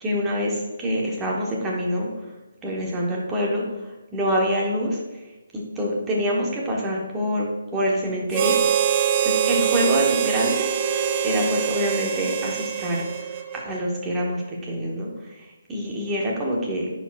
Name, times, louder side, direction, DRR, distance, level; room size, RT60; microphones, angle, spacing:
voice 1, 0.0-2.1 2.6-5.2 5.5-8.6 8.9-10.8 11.2-16.9, equal, 10° right, -3 dB, 1.1 m, -26 dB
Harmonica, 8.3-13.8, right 8 dB, 30° right, 0.4 m, -24 dB
9.9 x 4.8 x 2.4 m, 1.1 s
hypercardioid pair, 165°, 0 cm